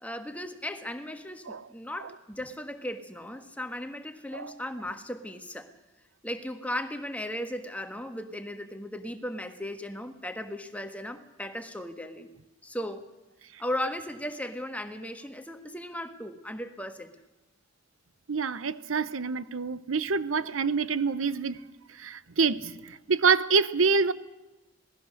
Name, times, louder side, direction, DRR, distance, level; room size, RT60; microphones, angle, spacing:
voice 1, 0.0-5.7 6.2-12.3 12.6-13.1 13.6-17.1, left 1 dB, 5° left, 1.4 m, -36 dB
voice 2, 18.3-21.6 22.0-24.1, right 5 dB, 85° right, 0.8 m, -26 dB
26.5 x 19.0 x 6.5 m
head